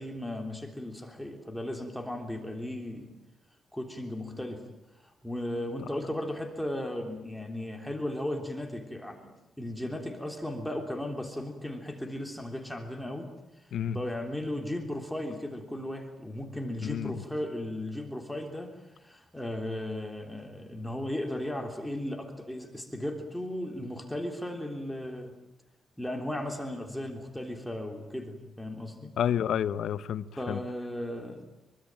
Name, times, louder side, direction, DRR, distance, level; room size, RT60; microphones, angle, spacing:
voice 1, 0.0-3.1 3.7-4.7 5.0-13.3 13.6-25.4 26.0-29.2 30.4-31.4, left 1 dB, 5° left, 3 dB, 3.4 m, -36 dB
voice 2, 16.8-17.1 29.2-30.6, left 9 dB, 80° left, 13 dB, 1.0 m, -30 dB
25.5 x 24.0 x 9.0 m, 0.89 s
cardioid pair, 130°, 0 cm